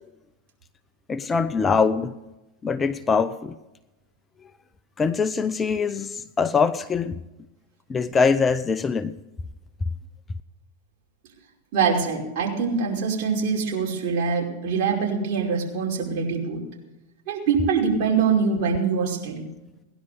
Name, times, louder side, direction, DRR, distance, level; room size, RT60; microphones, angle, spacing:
voice 1, 1.1-2.1 2.6-3.5 5.0-7.2 7.9-9.2, left 5 dB, 20° left, 0.7 m, -23 dB
voice 2, 11.7-16.6 17.3-19.5, right 5 dB, 50° right, 5.2 m, -24 dB
18.5 x 11.0 x 6.8 m
hypercardioid pair, 100°, 0 cm